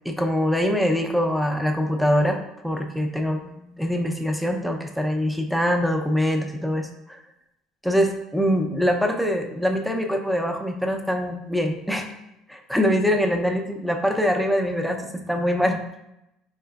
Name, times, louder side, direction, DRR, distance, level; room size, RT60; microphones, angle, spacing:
voice 1, 0.0-2.4 2.6-7.2 7.8-12.1 12.5-15.8, equal, ahead, 3 dB, 0.5 m, -23 dB
4.2 x 3.7 x 2.3 m, 0.87 s
supercardioid pair, 95°, 0 cm